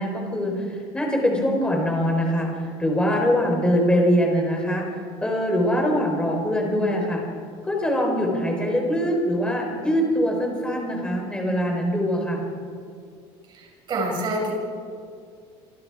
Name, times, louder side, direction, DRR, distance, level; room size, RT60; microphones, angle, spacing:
voice 1, 0.0-7.2 7.6-12.4, equal, 10° left, 0 dB, 4.5 m, -23 dB
voice 2, 13.5-14.5, right 1 dB, 40° right, -2 dB, 6.2 m, -27 dB
28.0 x 24.5 x 4.9 m, 2.3 s
cardioid pair, 160°, 12 cm